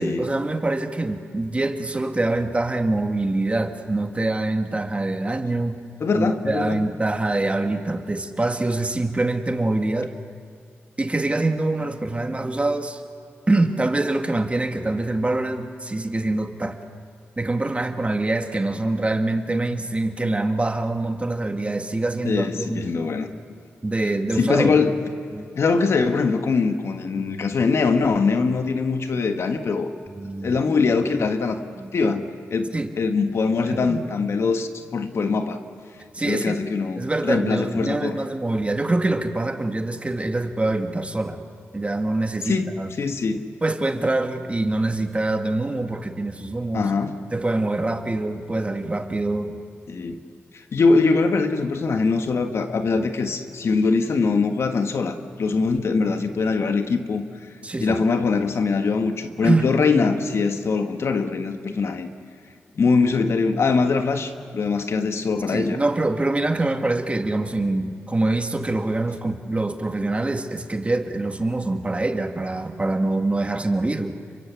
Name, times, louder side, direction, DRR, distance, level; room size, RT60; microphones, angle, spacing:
voice 1, 0.0-5.8 6.1-10.1 11.0-13.0 13.5-16.8 17.4-22.9 23.8-24.8 25.3-25.5 30.2-30.5 32.7-32.9 33.7-34.1 36.1-36.6 37.0-41.4 41.7-42.9 43.6-46.9 47.3-49.6 57.6-58.0 59.4-59.7 65.5-74.1, right 2 dB, 25° right, 6 dB, 1.9 m, -24 dB
voice 2, 6.0-6.8 22.2-23.3 24.4-25.0 25.5-29.9 30.4-31.6 31.9-32.2 32.5-35.6 36.2-38.2 42.5-42.7 43.0-43.5 46.7-47.1 49.9-50.2 50.5-57.2 57.8-62.1 62.8-65.8, left 4 dB, 65° left, 7 dB, 1.6 m, -22 dB
29.5 x 23.5 x 7.1 m, 2.2 s
cardioid pair, 60°, 5 cm